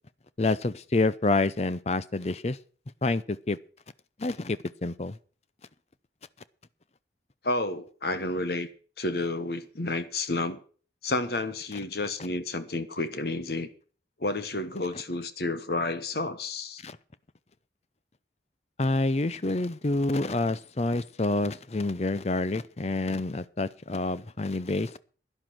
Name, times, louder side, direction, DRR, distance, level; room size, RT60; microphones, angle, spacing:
voice 1, 0.4-2.6 3.0-3.6 4.2-5.2 16.8-17.0 18.8-24.9, left 2 dB, 35° left, 0.6 m, -28 dB
voice 2, 7.4-8.7 9.0-10.6 11.0-13.7 14.2-16.8, left 2 dB, 55° left, 1.3 m, -30 dB
11.5 x 11.0 x 5.9 m
head